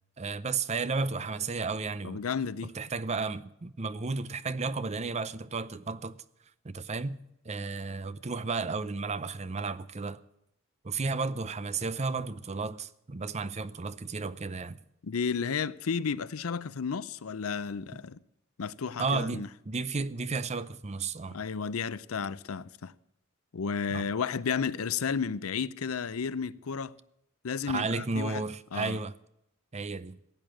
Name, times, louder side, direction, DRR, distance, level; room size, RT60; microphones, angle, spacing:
voice 1, 0.2-2.2 2.6-6.2 6.6-7.2 7.4-10.2 10.8-14.8 19.0-21.4 23.9-24.0 27.7-29.1 29.7-30.2, right 4 dB, 30° right, 0.6 m, -33 dB
voice 2, 2.0-2.7 15.0-18.2 18.6-19.5 21.3-22.9 23.5-26.9 27.4-28.4 28.7-29.0, left 6 dB, 85° left, 0.6 m, -32 dB
16.0 x 8.8 x 7.7 m
head